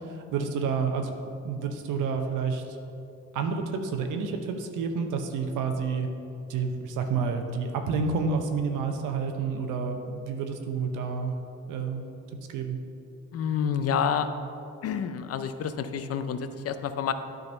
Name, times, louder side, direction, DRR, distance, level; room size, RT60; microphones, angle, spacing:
voice 1, 0.1-1.1 1.4-2.6 3.3-6.1 6.5-11.3 11.7-12.1 12.5-12.8, right 5 dB, 85° right, 5 dB, 0.8 m, -29 dB
voice 2, 13.3-14.3 14.8-17.1, left 7 dB, 50° left, 10 dB, 0.5 m, -28 dB
9.5 x 3.9 x 5.3 m, 2.8 s
cardioid pair, 90°, 30 cm